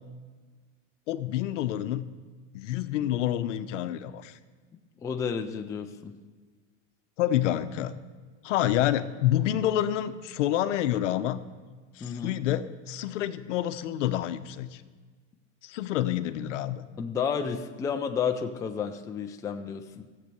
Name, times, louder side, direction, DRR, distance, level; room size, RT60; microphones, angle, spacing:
voice 1, 1.1-2.1 2.5-4.4 7.2-7.9 8.4-11.4 12.0-14.8 15.6-16.8, left 12 dB, 75° left, 11 dB, 0.8 m, -28 dB
voice 2, 5.0-6.2 12.0-12.3 17.0-20.1, left 6 dB, 10° left, 5 dB, 0.4 m, -31 dB
13.5 x 7.6 x 6.8 m, 1.4 s
supercardioid pair, 140°, 37 cm